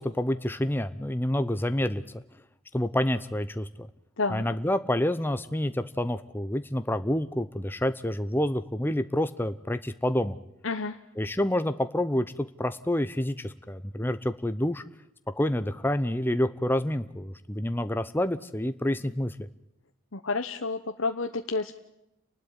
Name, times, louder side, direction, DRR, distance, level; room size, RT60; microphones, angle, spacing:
voice 1, 0.0-2.2 2.7-3.9 4.3-10.4 11.2-14.8 15.4-19.4, left 1 dB, 10° left, 10 dB, 0.8 m, -28 dB
voice 2, 10.6-11.0 20.1-21.8, left 3 dB, 70° left, 6 dB, 1.1 m, -30 dB
30.0 x 12.0 x 9.0 m, 0.85 s
head